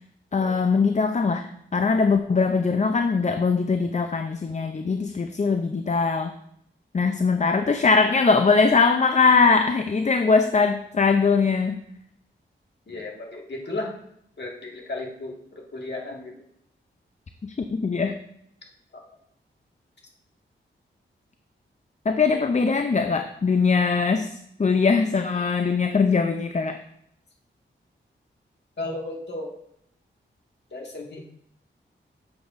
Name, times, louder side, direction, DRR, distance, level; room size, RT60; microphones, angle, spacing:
voice 1, 0.3-6.3 6.9-11.8 17.4-18.2 22.1-26.8, left 4 dB, 35° left, 7 dB, 0.5 m, -21 dB
voice 2, 12.9-13.9 14.4-16.3 28.8-29.5 30.7-31.2, left 2 dB, 55° left, -1 dB, 1.9 m, -34 dB
8.0 x 6.8 x 2.6 m, 0.72 s
cardioid pair, 50°, 21 cm